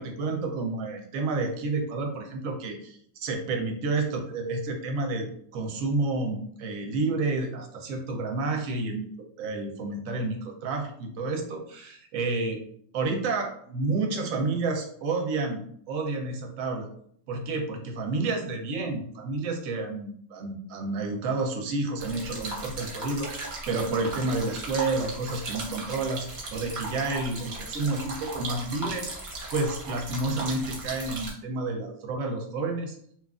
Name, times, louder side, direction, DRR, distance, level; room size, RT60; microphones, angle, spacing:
voice 1, 0.0-5.3 5.5-9.1 9.4-12.6 12.9-16.9 17.3-29.1 29.5-33.0, right 3 dB, 85° right, 3 dB, 1.0 m, -30 dB
sound 1, 22.0-31.3, right 2 dB, 50° right, 0.8 m, -37 dB
2.9 x 2.3 x 2.3 m, 0.64 s
omnidirectional pair, 1.3 m